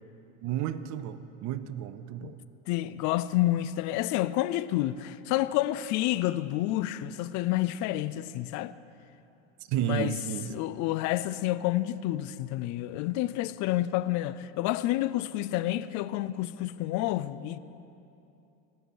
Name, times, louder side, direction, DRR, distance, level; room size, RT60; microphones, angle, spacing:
voice 1, 0.4-2.4 9.7-10.5, right 10 dB, 50° right, 0.7 m, -32 dB
voice 2, 2.7-8.7 9.8-10.1 10.5-17.6, left 15 dB, 50° left, 0.5 m, -29 dB
17.0 x 5.7 x 7.8 m
hypercardioid pair, 90°, 37 cm